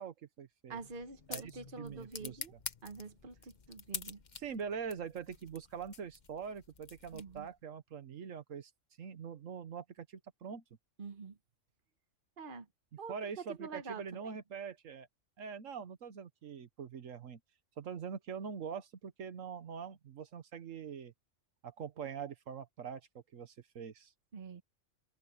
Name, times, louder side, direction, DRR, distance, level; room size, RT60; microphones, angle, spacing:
voice 1, 0.0-0.8 1.3-1.5 1.8-2.6 4.4-8.7 9.0-10.6 13.1-15.1 15.4-17.4 17.8-21.1 21.6-23.0 23.3-24.1, right 6 dB, 80° right, 1.4 m, -43 dB
sound 1, 0.7-7.6, left 5 dB, 40° left, 1.0 m, -48 dB
voice 2, 0.7-2.5 2.8-4.2 7.1-7.5 11.0-11.4 12.4-12.7 13.0-14.2 24.3-24.6, right 4 dB, 45° right, 1.5 m, -46 dB
open air
omnidirectional pair, 1.3 m